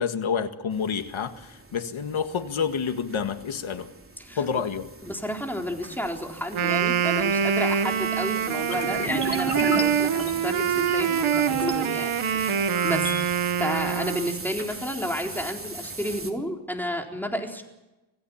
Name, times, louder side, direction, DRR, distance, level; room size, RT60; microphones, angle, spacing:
voice 1, 0.0-3.9 4.4-4.9, left 6 dB, 75° left, 8 dB, 1.9 m, -28 dB
sound 1, 0.7-16.3, right 3 dB, 25° right, 3.2 m, -41 dB
voice 2, 5.0-13.3 13.6-17.6, equal, 5° left, 2 dB, 4.0 m, -31 dB
Wind instrument woodwind instrument, 6.4-14.5, right 8 dB, 80° right, 1.4 m, -25 dB
sound 2, 8.7-11.7 12.2-13.2, left 2 dB, 25° left, 3.5 m, -33 dB
26.5 x 16.5 x 7.3 m, 1.0 s
wide cardioid pair, 90°, 48 cm